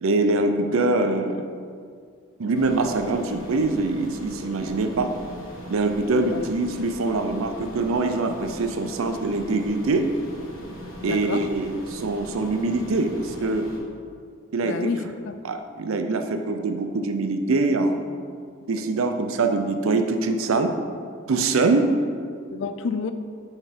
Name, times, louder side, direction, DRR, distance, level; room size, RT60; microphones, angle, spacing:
voice 1, 0.0-1.4 2.4-5.1 5.7-10.1 11.0-13.7 14.5-14.9 15.4-18.1 18.7-20.7 21.3-21.9, right 3 dB, 85° right, 7 dB, 0.5 m, -24 dB
sound 1, 2.5-13.8, equal, 85° left, 1.3 m, -41 dB
voice 2, 11.0-11.5 14.6-15.4 22.5-23.1, left 5 dB, 65° left, 9 dB, 0.4 m, -29 dB
5.9 x 4.3 x 5.2 m, 2.2 s
head